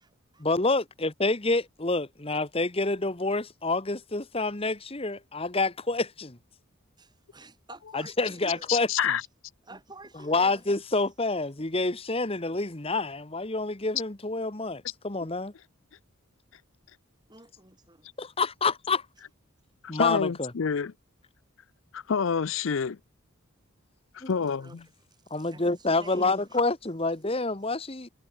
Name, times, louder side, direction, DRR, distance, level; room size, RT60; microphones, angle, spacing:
voice 1, 0.4-6.4 7.9-8.9 10.2-15.5 18.2-19.0 19.9-20.5 24.2-24.3 25.3-28.1, left 3 dB, 25° left, 1.3 m, -28 dB
voice 2, 7.0-8.7 9.2-9.3 9.6-10.6 17.3-18.1 24.2-24.8 25.1-26.6, right 2 dB, 20° right, 6.6 m, -50 dB
voice 3, 8.7-9.2 19.9-20.9 21.9-23.0 24.1-24.8, left 6 dB, 70° left, 0.5 m, -27 dB
head